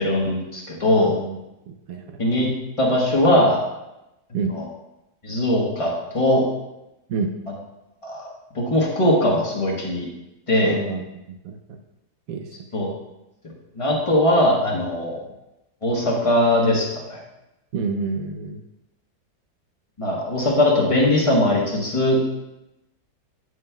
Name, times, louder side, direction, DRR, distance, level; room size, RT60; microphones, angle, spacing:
voice 1, 0.0-1.2 2.2-2.5 2.8-3.6 4.5-4.6 5.2-6.4 8.0-8.3 8.5-10.1 10.5-10.8 12.7-12.9 13.7-15.2 15.8-17.2 20.0-22.2, left 1 dB, 20° left, -2 dB, 1.1 m, -20 dB
voice 2, 1.0-1.4 1.7-2.2 4.3-4.5 7.1-7.3 10.6-11.0 11.3-11.8 12.3-12.5 17.7-18.6, right 4 dB, 70° right, 5 dB, 0.9 m, -28 dB
8.7 x 6.3 x 2.2 m, 0.92 s
omnidirectional pair, 1.8 m